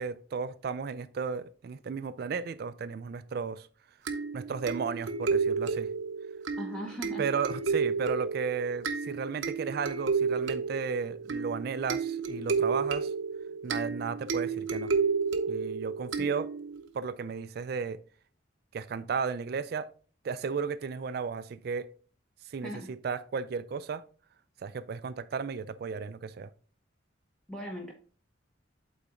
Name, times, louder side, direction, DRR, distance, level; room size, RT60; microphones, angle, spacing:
voice 1, 0.0-3.7 4.3-5.9 7.2-13.1 13.6-14.9 15.5-16.5 16.9-18.0 18.7-19.9 20.2-21.9 22.5-24.0 24.6-26.5, right 5 dB, 55° right, 0.3 m, -34 dB
sound 1, 4.1-16.8, right 5 dB, 85° right, 0.7 m, -31 dB
voice 2, 6.6-7.2 16.2-16.3 22.6-22.9 27.5-27.9, equal, 5° left, 0.8 m, -39 dB
8.2 x 3.9 x 3.6 m
head